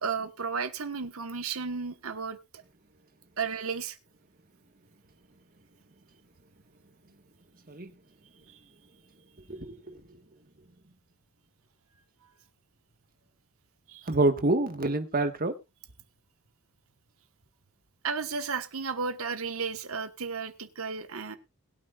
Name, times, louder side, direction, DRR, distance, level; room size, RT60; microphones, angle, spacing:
voice 1, 0.0-2.6 3.4-4.0 13.9-14.1 18.0-21.4, right 5 dB, 70° right, 1.2 m, -33 dB
voice 2, 9.5-10.2 14.1-15.5, right 2 dB, 40° right, 1.4 m, -27 dB
21.5 x 8.6 x 2.4 m
head